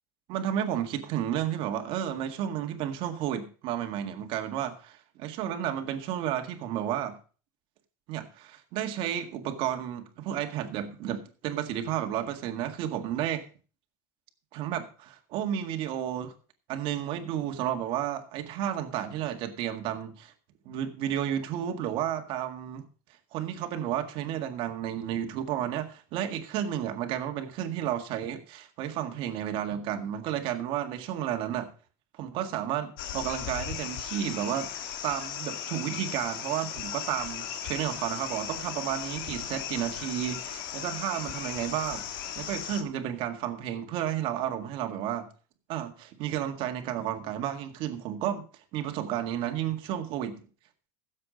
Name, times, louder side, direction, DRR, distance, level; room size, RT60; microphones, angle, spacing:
voice 1, 0.3-7.2 8.1-13.4 14.5-16.3 16.7-20.3 20.7-22.8 23.3-31.7 32.2-34.7 35.0-45.3 45.7-48.4 48.7-50.4, right 10 dB, 50° right, 1.8 m, -32 dB
sound 1, 33.0-42.8, left 9 dB, 75° left, 1.7 m, -37 dB
15.5 x 7.6 x 5.2 m
cardioid pair, 150°, 11 cm